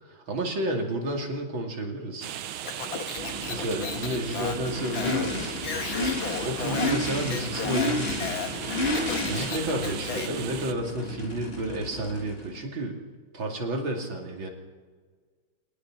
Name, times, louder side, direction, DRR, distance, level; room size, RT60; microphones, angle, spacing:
voice 1, 0.0-2.3 3.1-3.2 3.5-5.5 6.3-8.4 9.3-13.0 13.3-14.5, right 1 dB, 70° right, 1 dB, 3.3 m, -31 dB
sound 1, 2.2-10.7, right 10 dB, 85° right, 1.7 m, -38 dB
Speech, 2.6-10.4, left 7 dB, 70° left, 2.0 m, -35 dB
Race car auto racing / Idling / Accelerating revving vroom, 3.2-12.6, left 2 dB, 30° left, 2.3 m, -32 dB
23.0 x 19.0 x 6.1 m, 1.5 s
omnidirectional pair, 2.3 m